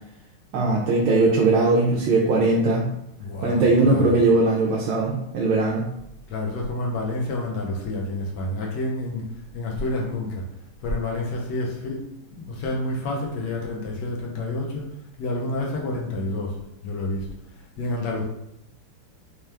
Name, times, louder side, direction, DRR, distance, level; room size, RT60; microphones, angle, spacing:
voice 1, 0.5-2.9 3.4-5.9, right 2 dB, 75° right, -3 dB, 1.3 m, -20 dB
voice 2, 3.2-4.1 6.3-9.2 9.5-10.4 10.8-12.1 12.3-14.8 15.2-16.6 16.8-17.3 17.5-18.2, left 2 dB, 65° left, -2 dB, 1.2 m, -29 dB
4.5 x 2.3 x 3.3 m, 0.80 s
omnidirectional pair, 2.4 m